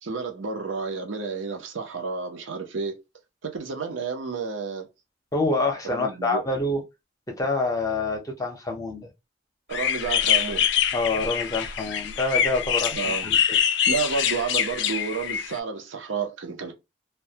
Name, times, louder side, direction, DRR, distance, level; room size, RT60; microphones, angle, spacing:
voice 1, 0.0-3.0 3.4-4.9 5.8-6.4 9.7-10.7 12.9-13.3 13.9-16.7, right 5 dB, 90° right, 0.6 m, -30 dB
voice 2, 5.3-6.8 7.4-9.1 10.9-13.6, left 2 dB, 20° left, 0.6 m, -27 dB
sound 1, 9.7-15.6, left 9 dB, 65° left, 0.3 m, -25 dB
2.2 x 2.1 x 2.7 m
head